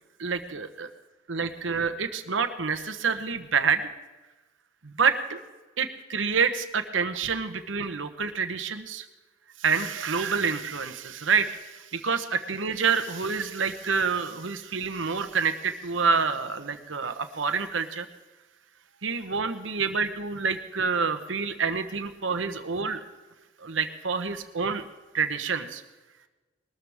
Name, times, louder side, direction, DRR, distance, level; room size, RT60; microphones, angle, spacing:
voice 1, 0.2-0.9 1.3-3.8 4.8-5.4 5.8-9.0 9.6-18.1 19.0-23.0 23.6-24.8 25.1-25.8, right 5 dB, 75° right, 9 dB, 1.0 m, -27 dB
20.5 x 13.5 x 3.5 m, 1.2 s
head